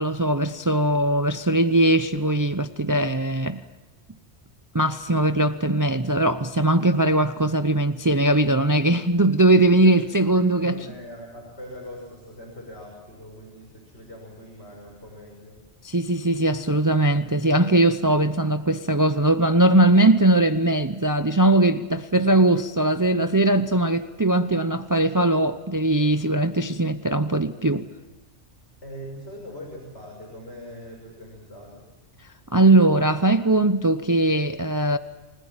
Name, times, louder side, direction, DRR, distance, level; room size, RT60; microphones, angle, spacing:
voice 1, 0.0-3.6 4.7-10.8 15.8-27.8 32.5-35.0, right 1 dB, 20° right, 0.6 m, -20 dB
voice 2, 9.6-9.9 10.5-15.6 28.8-31.8, equal, 75° left, 6.3 m, -41 dB
28.5 x 20.5 x 7.4 m
omnidirectional pair, 1.2 m